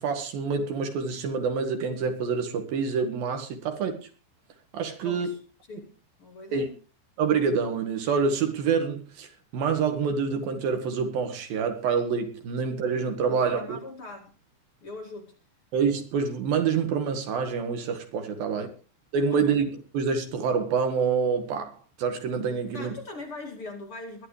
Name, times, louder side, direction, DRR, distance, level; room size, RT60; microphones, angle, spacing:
voice 1, 0.0-4.0 4.7-5.3 6.5-6.7 7.2-9.3 9.5-13.8 15.7-18.7 19.1-22.9, right 5 dB, 65° right, 3.2 m, -27 dB
voice 2, 5.0-5.4 5.7-5.9 6.2-6.7 13.2-14.3 14.8-15.3 18.5-18.7 19.3-19.6 22.7-24.3, left 2 dB, 40° left, 2.6 m, -41 dB
21.0 x 12.0 x 3.2 m
omnidirectional pair, 4.7 m